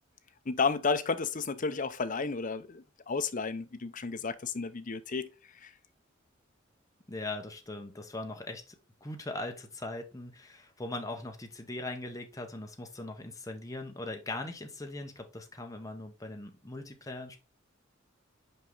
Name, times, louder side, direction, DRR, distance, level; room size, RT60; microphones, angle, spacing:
voice 1, 0.5-5.7, left 4 dB, 40° left, 0.6 m, -32 dB
voice 2, 7.1-8.8 9.0-17.4, left 2 dB, 15° left, 1.0 m, -40 dB
5.5 x 4.9 x 3.9 m
head